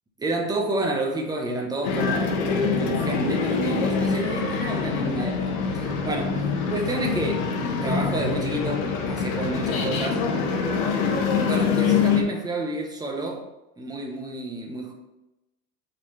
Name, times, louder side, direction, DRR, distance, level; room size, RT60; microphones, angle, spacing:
voice 1, 0.2-10.3 11.4-13.4 13.8-14.9, right 2 dB, 10° right, 1.0 m, -30 dB
sound 1, 1.8-12.2, left 5 dB, 60° left, 1.5 m, -25 dB
6.2 x 4.2 x 5.5 m
supercardioid pair, 140°, 46 cm